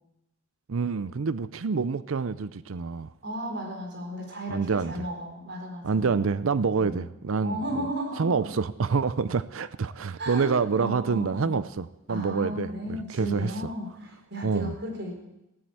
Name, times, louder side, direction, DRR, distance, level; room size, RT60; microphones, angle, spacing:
voice 1, 0.7-3.1 4.5-5.0 5.8-7.9 8.2-13.5 14.4-14.7, right 5 dB, 75° right, 16 dB, 0.5 m, -27 dB
voice 2, 3.2-6.2 6.7-7.1 7.4-8.5 10.2-11.6 12.1-15.1, right 1 dB, 55° right, 2 dB, 4.0 m, -34 dB
18.0 x 7.8 x 8.6 m, 0.90 s
head